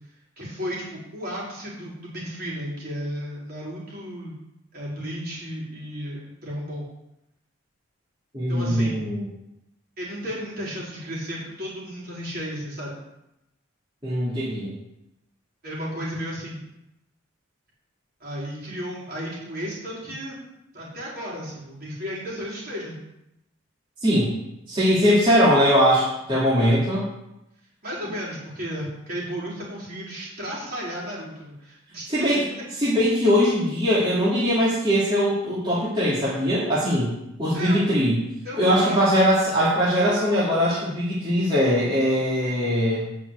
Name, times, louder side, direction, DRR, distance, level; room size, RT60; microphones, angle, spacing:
voice 1, 0.4-4.4 4.7-6.9 8.5-9.1 10.0-13.0 15.6-16.6 18.2-20.4 20.7-22.9 26.6-26.8 27.8-32.6 37.5-37.8 38.4-39.1, equal, 45° right, -5 dB, 4.4 m, -34 dB
voice 2, 8.3-9.2 14.0-14.7 24.0-24.3 24.7-27.0 32.1-32.4 32.8-37.1 37.4-38.2 38.6-43.0, equal, 25° right, -10 dB, 2.7 m, -21 dB
9.2 x 6.1 x 8.2 m, 0.88 s
head